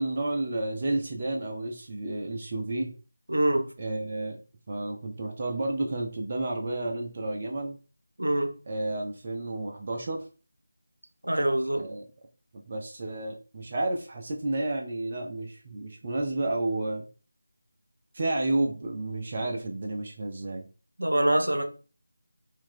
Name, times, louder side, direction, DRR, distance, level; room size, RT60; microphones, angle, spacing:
voice 1, 0.0-2.9 3.8-4.4 4.7-7.8 8.7-10.2 11.7-12.0 12.7-17.1 18.1-20.7, right 2 dB, 35° right, 2 dB, 0.8 m, -31 dB
voice 2, 3.3-3.7 8.2-8.5 11.2-11.8 21.0-21.6, right 1 dB, 80° right, 5 dB, 1.0 m, -24 dB
4.6 x 2.9 x 3.8 m, 0.35 s
figure-of-eight pair, 165°, 0 cm